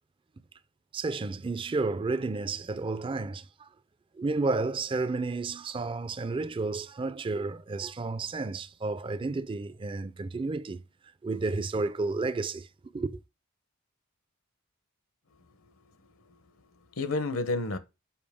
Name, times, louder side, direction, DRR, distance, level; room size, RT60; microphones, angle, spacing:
voice 1, 0.9-3.7 4.1-10.8 11.2-12.7 12.9-13.2, right 3 dB, 25° right, 0.4 m, -31 dB
voice 2, 15.3-17.8, left 3 dB, 80° left, 0.9 m, -34 dB
7.0 x 5.2 x 3.5 m
head